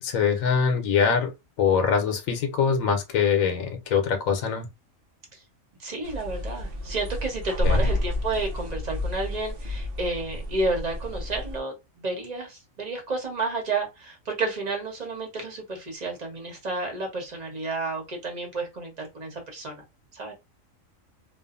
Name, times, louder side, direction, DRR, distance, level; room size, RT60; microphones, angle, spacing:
voice 1, 0.0-4.7 7.6-7.8, left 6 dB, 85° left, 1.1 m, -23 dB
voice 2, 5.8-19.8 20.1-20.3, right 3 dB, 35° right, 1.0 m, -31 dB
sound 1, 6.0-11.6, left 1 dB, 55° right, 0.8 m, -30 dB
2.6 x 2.4 x 2.4 m
omnidirectional pair, 1.4 m